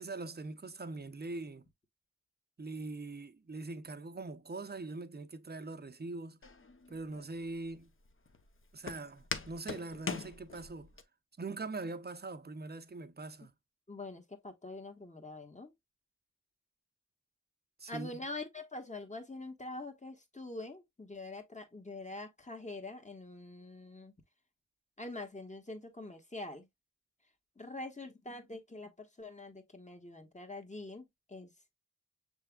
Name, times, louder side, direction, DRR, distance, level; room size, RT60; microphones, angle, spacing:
voice 1, 0.0-1.6 2.6-6.4 6.9-7.9 8.7-10.9 11.4-13.5 17.8-18.1, right 3 dB, 35° right, 0.6 m, -42 dB
Walk footsteps, 6.4-11.0, left 4 dB, 45° left, 0.7 m, -42 dB
voice 2, 13.9-15.7 17.9-24.1 25.0-26.7 27.6-31.5, left 2 dB, 25° left, 1.2 m, -45 dB
6.8 x 3.3 x 2.2 m
wide cardioid pair, 55°, 30 cm